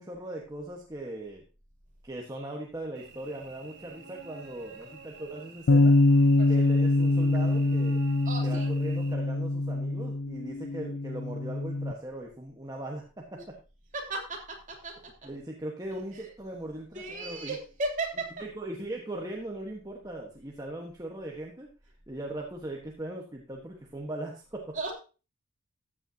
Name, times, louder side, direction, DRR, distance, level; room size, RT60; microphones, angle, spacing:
voice 1, 0.0-1.4 2.0-5.9 6.5-8.0 8.4-13.6 15.2-17.6 18.4-21.7 22.1-24.7, right 1 dB, 20° right, -1 dB, 1.3 m, -39 dB
Cricket / Buzz, 3.0-9.1, right 3 dB, 55° right, 1.2 m, -49 dB
Bass guitar, 5.7-11.9, left 2 dB, 60° left, 0.5 m, -24 dB
voice 2, 8.2-8.7 13.9-14.9 15.2-15.3 16.1-16.3 16.9-18.3 24.7-24.9, right 2 dB, 40° right, 0 dB, 3.0 m, -35 dB
14.0 x 8.6 x 2.8 m, 0.32 s
head